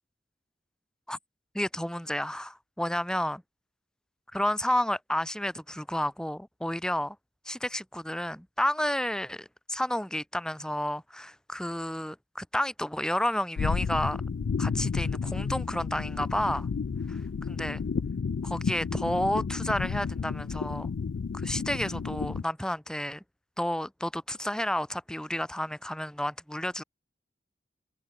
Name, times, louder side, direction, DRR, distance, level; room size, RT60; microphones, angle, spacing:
voice 1, 1.5-3.4 4.3-7.2 7.4-14.2 14.6-16.7 17.1-17.2 17.5-17.8 18.4-20.9 21.3-23.2 23.6-26.8, left 1 dB, 5° left, 1.6 m, -31 dB
sound 1, 13.6-22.4, left 5 dB, 85° left, 0.4 m, -31 dB
head